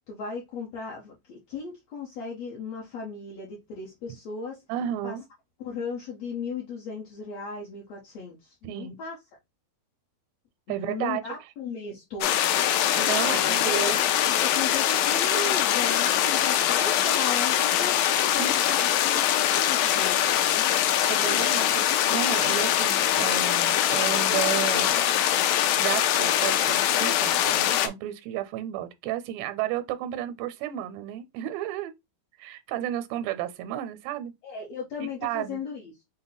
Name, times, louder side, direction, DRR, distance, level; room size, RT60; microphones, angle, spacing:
voice 1, 0.1-4.6 5.0-5.2 5.6-9.2 10.7-12.4 13.2-13.6 14.4-18.0 18.3-20.6 34.4-35.9, left 4 dB, 65° left, 1.7 m, -36 dB
voice 2, 4.7-5.2 8.6-9.0 10.7-11.2 13.0-14.0 18.4-18.5 21.1-25.0 25.8-31.9 32.4-34.3 35.0-35.6, right 11 dB, 85° right, 2.4 m, -32 dB
sound 1, 12.2-27.9, left 11 dB, 85° left, 2.4 m, -23 dB
5.9 x 2.1 x 4.0 m
omnidirectional pair, 4.1 m